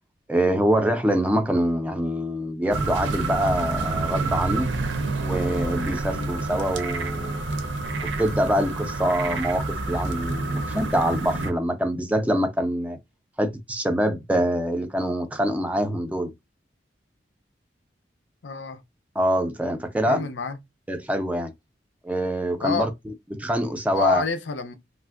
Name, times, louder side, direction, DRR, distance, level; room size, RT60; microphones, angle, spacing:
voice 1, 0.3-4.7 5.2-7.4 8.2-13.0 13.4-16.3 19.2-20.2 20.9-21.5 22.0-22.9 23.3-24.2, equal, 10° right, 0.3 m, -25 dB
sound 1, 2.7-11.5, right 3 dB, 90° right, 0.6 m, -28 dB
voice 2, 18.4-18.8 20.1-20.6 22.6-22.9 23.9-24.7, left 5 dB, 80° left, 0.5 m, -28 dB
3.2 x 2.5 x 2.4 m
head